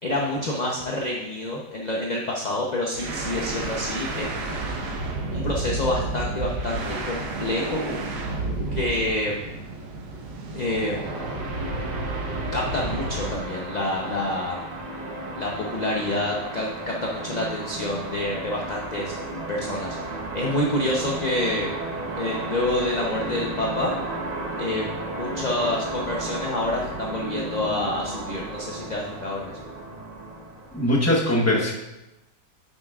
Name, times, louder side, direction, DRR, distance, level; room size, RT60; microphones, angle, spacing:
voice 1, 0.0-4.5 5.3-7.8 8.7-9.5 10.5-11.2 12.5-14.6 15.4-19.1 19.5-20.0 20.3-21.7 22.2-23.9 24.6-24.9 25.2-29.5, left 1 dB, 40° left, -2 dB, 0.6 m, -27 dB
sound 1, 2.9-13.4, right 2 dB, 70° right, 1.6 m, -31 dB
sound 2, 11.0-31.0, right 2 dB, 35° right, 0.8 m, -34 dB
voice 2, 30.7-31.7, left 1 dB, 10° left, -2 dB, 0.9 m, -21 dB
8.9 x 8.3 x 2.4 m, 0.96 s
omnidirectional pair, 1.8 m